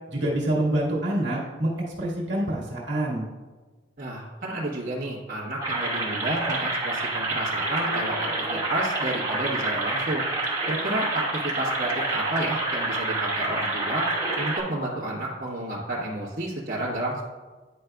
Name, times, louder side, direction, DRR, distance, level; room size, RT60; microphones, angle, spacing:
voice 1, 0.1-3.3, right 1 dB, 65° right, -4 dB, 1.6 m, -26 dB
voice 2, 4.0-10.3 10.7-14.1 14.4-17.2, right 1 dB, 45° right, -8 dB, 1.2 m, -31 dB
sound 1, 5.6-14.6, right 2 dB, 20° right, 1.8 m, -28 dB
9.7 x 5.0 x 2.3 m, 1.3 s
head